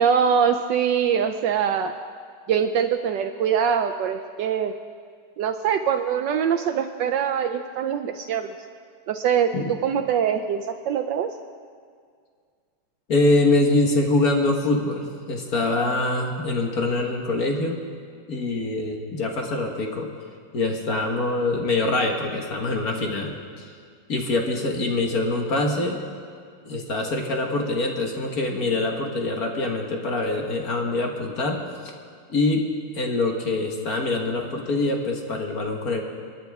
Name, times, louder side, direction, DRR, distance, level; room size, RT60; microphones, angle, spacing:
voice 1, 0.0-1.9 2.5-4.7 5.4-8.5 9.1-9.5 9.8-11.3, right 7 dB, 75° right, 7 dB, 1.1 m, -23 dB
voice 2, 13.1-17.8 18.3-20.1 20.5-23.7 24.1-26.0 26.6-31.6 32.3-32.7 32.9-36.0, left 2 dB, 50° left, 1 dB, 1.6 m, -24 dB
29.5 x 9.9 x 3.5 m, 2.1 s
omnidirectional pair, 2.3 m